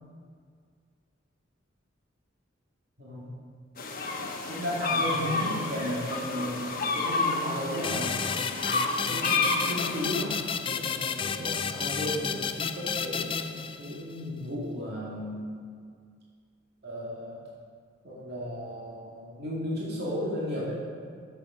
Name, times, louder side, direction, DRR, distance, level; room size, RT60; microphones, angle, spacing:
voice 1, 3.0-3.3 4.5-8.2 9.1-10.4 10.7-15.6 16.8-17.4 18.0-20.8, left 1 dB, 55° right, -6 dB, 2.3 m, -34 dB
sound 1, 3.8-10.1, left 3 dB, 45° left, 1.1 m, -30 dB
sound 2, 7.8-14.2, left 6 dB, 25° left, 0.3 m, -32 dB
9.0 x 7.1 x 6.1 m, 2.1 s
head